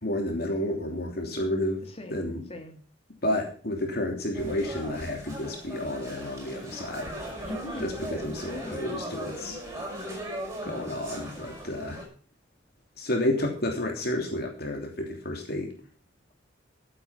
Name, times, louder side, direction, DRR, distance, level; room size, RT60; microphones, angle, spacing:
voice 1, 0.0-1.8 2.1-2.4 3.2-7.1 7.8-9.6 10.6-12.0 13.0-15.7, left 1 dB, 60° left, 2 dB, 3.1 m, -30 dB
voice 2, 1.8-2.8 7.4-7.9 8.5-8.8, left 1 dB, 35° left, 3 dB, 2.9 m, -40 dB
sound 1, 4.3-12.0, right 1 dB, 15° right, 5.9 m, -38 dB
14.0 x 9.1 x 5.8 m, 0.41 s
head